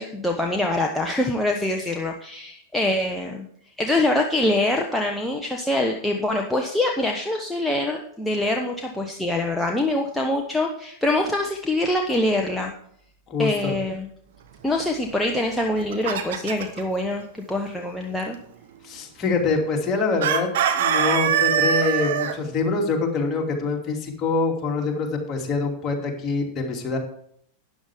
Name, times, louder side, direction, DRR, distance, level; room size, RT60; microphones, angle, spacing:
voice 1, 0.0-3.5 3.8-12.7 13.4-14.1 14.6-18.4, left 1 dB, 5° left, 1 dB, 1.1 m, -24 dB
voice 2, 13.3-13.7 18.8-27.0, left 4 dB, 25° left, 0 dB, 2.7 m, -25 dB
Chicken rooster, 15.6-16.8 20.2-22.3, right 8 dB, 55° right, 1.2 m, -22 dB
12.5 x 9.8 x 3.6 m, 0.67 s
figure-of-eight pair, 90°, 0 cm